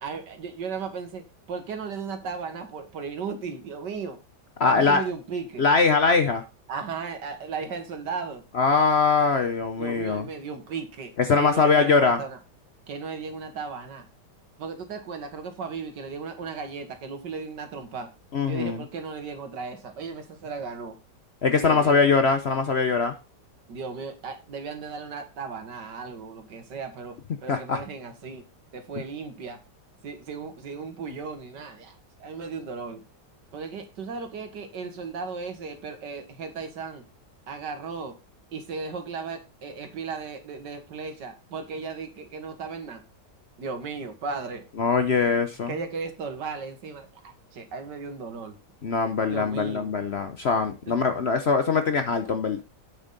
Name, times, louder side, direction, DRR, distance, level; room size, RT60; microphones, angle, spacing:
voice 1, 0.0-4.2 4.6-5.6 6.7-8.4 9.8-12.4 12.9-14.0 14.6-18.1 18.4-21.0 21.6-22.0 23.7-28.4 28.7-29.6 30.0-31.9 32.2-33.0 33.5-37.0 37.5-38.1 38.5-43.0 43.6-44.6 45.7-48.6 49.3-49.9 50.9-51.0, right 5 dB, 80° right, 2.1 m, -36 dB
voice 2, 4.6-5.0 5.6-6.4 8.5-10.3 11.2-12.2 18.3-18.8 21.4-23.1 27.5-27.8 44.8-45.7 48.8-52.6, left 4 dB, 50° left, 0.8 m, -22 dB
8.2 x 7.1 x 3.9 m
omnidirectional pair, 1.9 m